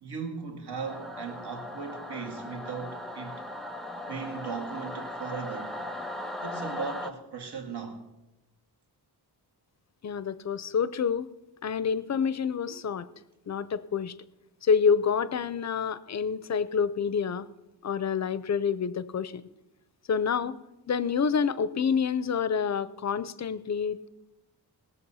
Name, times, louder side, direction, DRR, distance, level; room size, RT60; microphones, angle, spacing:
voice 1, 0.0-3.4 4.1-5.8 6.4-8.0, right 5 dB, 70° right, 2.1 m, -37 dB
Singing / Musical instrument, 0.8-7.1, left 1 dB, ahead, 0.6 m, -38 dB
voice 2, 10.0-11.3 11.6-13.1 13.5-14.1 14.6-17.5 17.8-19.4 20.1-20.6 20.9-24.1, left 6 dB, 45° left, 0.5 m, -27 dB
19.5 x 7.2 x 5.6 m
wide cardioid pair, 180°, 41 cm